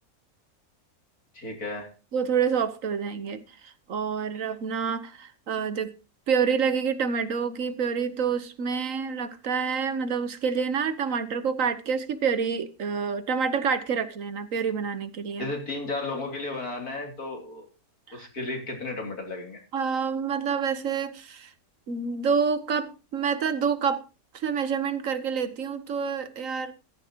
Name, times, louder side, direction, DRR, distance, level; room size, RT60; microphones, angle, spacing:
voice 1, 1.3-1.9 15.4-17.7 18.1-19.6, left 2 dB, 80° left, 3.7 m, -34 dB
voice 2, 2.1-5.9 6.3-15.5 18.1-18.3 19.7-21.5 21.9-24.0 24.3-26.7, right 6 dB, 65° right, 1.4 m, -28 dB
14.5 x 13.5 x 2.9 m
omnidirectional pair, 1.5 m